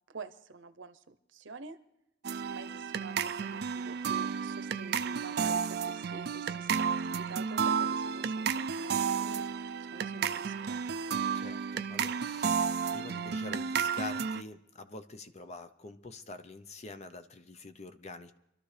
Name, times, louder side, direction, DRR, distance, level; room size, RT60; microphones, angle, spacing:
voice 1, 0.1-1.8 2.5-9.4 9.9-10.8, right 4 dB, 80° right, 10 dB, 0.8 m, -47 dB
sound 1, 2.2-14.4, right 6 dB, 55° right, 0.4 m, -32 dB
voice 2, 11.3-18.3, left 3 dB, 35° left, 10 dB, 0.7 m, -46 dB
26.0 x 12.5 x 3.3 m, 0.87 s
head